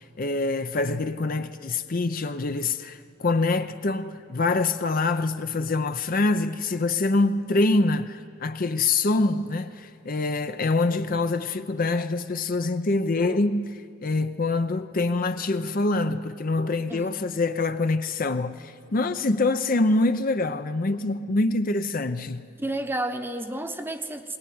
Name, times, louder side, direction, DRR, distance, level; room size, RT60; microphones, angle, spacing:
voice 1, 0.0-22.4, left 3 dB, 45° left, 0.6 m, -25 dB
voice 2, 22.6-24.4, right 1 dB, 10° right, 0.9 m, -31 dB
21.0 x 19.5 x 9.4 m
head